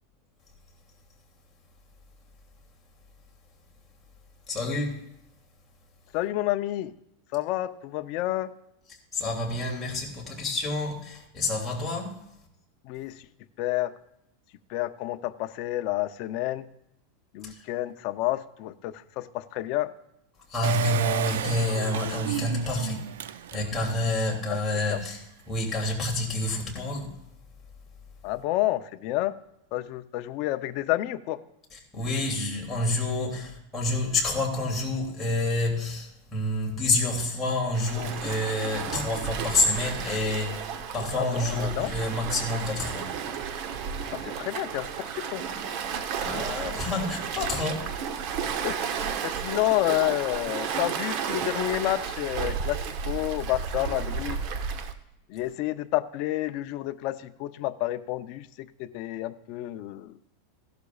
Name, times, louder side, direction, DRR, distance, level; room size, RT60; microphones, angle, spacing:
voice 1, 4.5-5.0 9.1-12.2 17.4-17.6 20.5-25.2 25.5-27.1 31.7-40.6 40.9-43.1 46.2-47.9, left 2 dB, 15° left, 2.6 m, -28 dB
voice 2, 6.1-6.9 7.3-8.5 12.8-13.3 13.6-13.9 14.7-16.7 17.3-19.9 24.5-24.6 24.9-25.0 28.2-29.4 29.7-31.4 41.1-41.9 44.1-45.5 48.6-54.4 55.3-60.2, left 15 dB, 45° left, 0.5 m, -30 dB
Engine, 20.6-24.1 24.6-24.7 24.8-24.9, right 11 dB, 90° right, 0.4 m, -32 dB
Waves surf, 37.7-54.9, right 7 dB, 45° right, 0.9 m, -33 dB
16.0 x 12.0 x 2.4 m
supercardioid pair, 155°, 0 cm